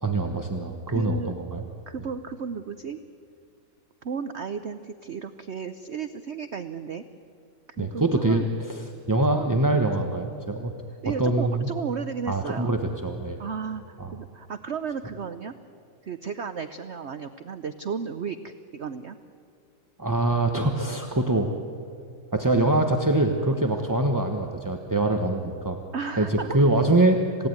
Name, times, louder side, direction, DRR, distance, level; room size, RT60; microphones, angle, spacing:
voice 1, 0.0-1.6 7.8-10.7 11.2-11.7 12.3-13.4 14.0-14.1 20.0-21.5 22.3-25.8 26.2-27.5, right 2 dB, 15° right, 3 dB, 0.9 m, -24 dB
voice 2, 0.9-1.3 1.9-3.0 4.0-7.0 7.8-8.5 9.3-10.1 11.0-12.7 13.4-15.5 16.0-19.2 25.9-26.6, right 6 dB, 55° right, 10 dB, 0.7 m, -34 dB
27.5 x 17.5 x 9.5 m, 2.3 s
omnidirectional pair, 2.1 m